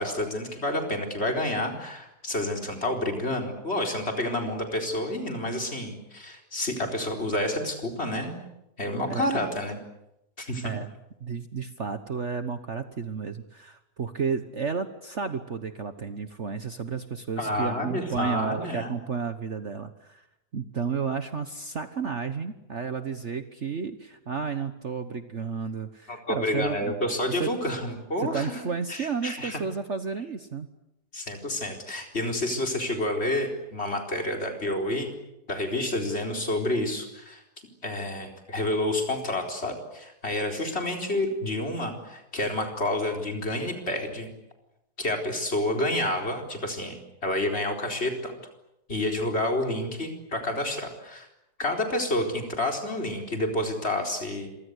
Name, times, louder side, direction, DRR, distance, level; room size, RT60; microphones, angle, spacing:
voice 1, 0.0-8.4 8.8-9.8 10.4-10.7 17.4-18.9 26.1-28.6 28.9-29.6 31.1-35.1 35.5-37.4 37.8-44.3 45.0-48.3 48.9-51.3 51.6-54.5, left 1 dB, 40° left, 3 dB, 4.5 m, -29 dB
voice 2, 11.2-20.2 20.5-26.9 27.3-27.5 28.2-30.7, right 5 dB, 45° right, 9 dB, 1.4 m, -32 dB
28.0 x 24.5 x 8.2 m, 0.89 s
omnidirectional pair, 1.8 m